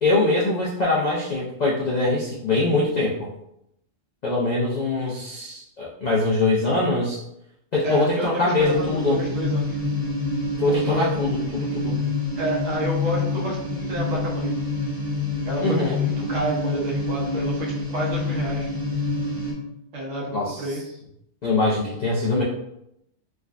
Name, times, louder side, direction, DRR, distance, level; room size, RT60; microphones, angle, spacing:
voice 1, 0.0-3.3 4.2-7.2 7.7-9.2 10.6-12.0 15.6-16.0 20.3-20.7 21.4-22.4, left 2 dB, 75° left, -4 dB, 0.3 m, -23 dB
voice 2, 7.8-9.8 10.7-11.1 12.4-14.5 15.4-18.7 19.9-20.8, right 1 dB, 65° right, -3 dB, 1.1 m, -29 dB
sound 1, 8.6-19.5, left 3 dB, 60° left, 1.4 m, -27 dB
3.5 x 2.2 x 2.4 m, 0.81 s
omnidirectional pair, 1.4 m